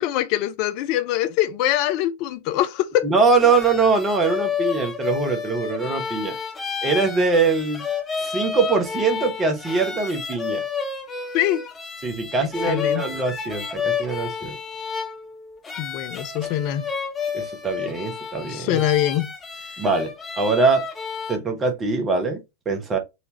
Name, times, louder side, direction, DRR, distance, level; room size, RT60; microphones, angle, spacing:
voice 1, 0.0-3.1 11.3-11.6 12.7-13.1 15.8-16.8 18.5-19.3, left 13 dB, 45° left, 0.5 m, -23 dB
voice 2, 3.0-6.4 6.8-7.8 8.2-10.6 12.0-14.6 17.3-18.8 19.8-20.8 21.3-23.0, right 4 dB, 20° right, 1.1 m, -22 dB
sound 1, 3.2-21.4, left 6 dB, 15° left, 0.9 m, -30 dB
4.2 x 2.7 x 2.9 m
figure-of-eight pair, 90°, 0 cm